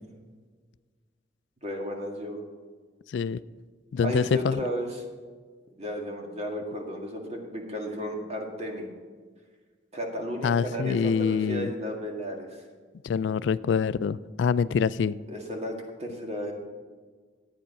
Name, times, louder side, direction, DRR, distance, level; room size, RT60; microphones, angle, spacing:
voice 1, 1.6-2.4 4.0-5.0 5.7-8.9 9.9-12.6 15.3-16.5, equal, 35° right, 1 dB, 2.0 m, -34 dB
voice 2, 3.1-3.4 3.9-4.6 10.4-11.7 13.0-15.2, left 6 dB, 70° left, 16 dB, 0.3 m, -25 dB
11.0 x 9.0 x 5.9 m, 1.5 s
head